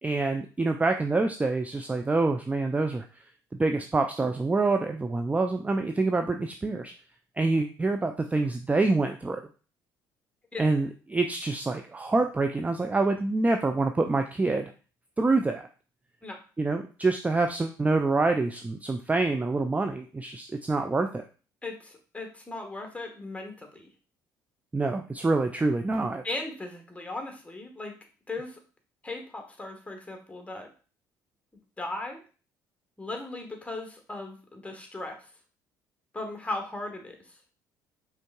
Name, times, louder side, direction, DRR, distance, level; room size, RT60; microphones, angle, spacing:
voice 1, 0.0-3.1 3.6-6.9 7.4-9.4 10.6-14.7 15.2-15.7 16.6-21.2 24.7-26.2, right 3 dB, 15° right, 5 dB, 0.4 m, -26 dB
voice 2, 21.6-23.9 26.2-28.0 28.3-28.6 29.0-30.7 31.8-32.2 33.0-35.3 36.1-37.4, left 2 dB, 10° left, 3 dB, 1.3 m, -37 dB
5.1 x 3.5 x 2.3 m, 0.37 s
hypercardioid pair, 50°, 10 cm